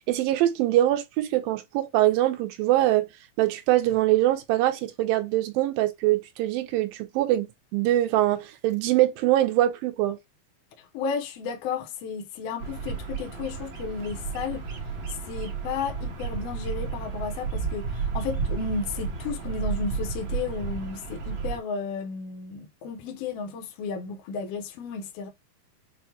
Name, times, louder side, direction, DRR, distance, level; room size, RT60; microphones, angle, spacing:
voice 1, 0.1-3.1 3.4-7.5 7.7-10.2, right 14 dB, 85° right, 2.4 m, -23 dB
voice 2, 10.9-14.7 15.3-25.3, left 5 dB, 75° left, 1.4 m, -33 dB
Bird vocalization bird call bird song, 12.6-21.6, right 5 dB, 70° right, 1.5 m, -32 dB
6.4 x 2.2 x 2.8 m
omnidirectional pair, 4.1 m